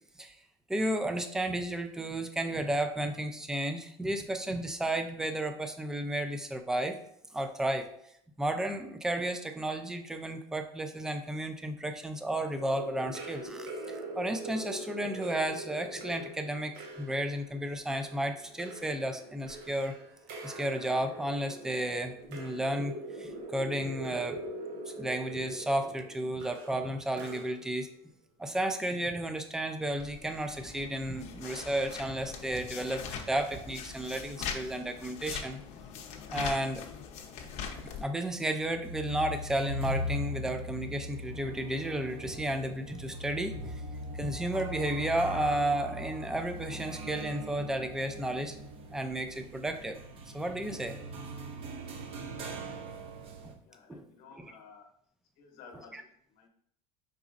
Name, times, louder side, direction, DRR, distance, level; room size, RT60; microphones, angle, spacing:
voice 1, 0.7-7.0 7.3-7.9 8.4-19.9 20.4-24.4 25.0-27.9 28.4-35.6 36.3-36.8 38.0-43.8 44.1-48.6 48.9-50.0 50.3-51.0 53.4-53.5 53.9-54.0 54.3-54.6 55.7-56.0, right 1 dB, 5° right, 7 dB, 0.3 m, -33 dB
sound 1, 12.6-27.9, right 1 dB, 85° right, 0.9 m, -43 dB
sound 2, 30.0-38.1, left 7 dB, 55° left, 0.7 m, -41 dB
sound 3, 38.0-53.5, equal, 40° right, 0.6 m, -40 dB
voice 2, 53.7-54.9 55.4-56.0 56.4-56.5, left 5 dB, 75° left, 3 dB, 1.0 m, -53 dB
4.9 x 4.0 x 2.4 m, 0.69 s
cardioid pair, 140°, 14 cm